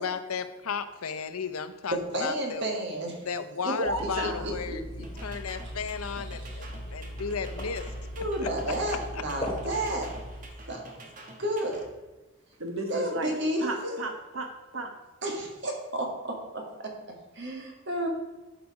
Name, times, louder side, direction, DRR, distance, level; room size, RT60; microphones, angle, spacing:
voice 1, 0.0-2.7 3.2-4.8 5.2-7.9 8.4-8.5 9.1-9.2, left 6 dB, 90° left, 11 dB, 0.7 m, -34 dB
voice 2, 2.1-3.3 3.6-3.7 4.4-4.8 6.3-6.6 8.2-10.1 10.7-10.8 11.4-11.9 12.9-14.0 15.2-16.9 17.3-18.1, right 1 dB, 55° right, 1 dB, 1.7 m, -31 dB
voice 3, 3.7-4.5 12.6-13.3 13.6-14.9, right 2 dB, 70° right, 4 dB, 1.4 m, -33 dB
sound 1, 3.8-10.5, equal, 20° left, 1.5 m, -38 dB
sound 2, 5.0-11.9, right 1 dB, 35° right, 1.3 m, -48 dB
11.5 x 5.0 x 4.8 m, 1.1 s
head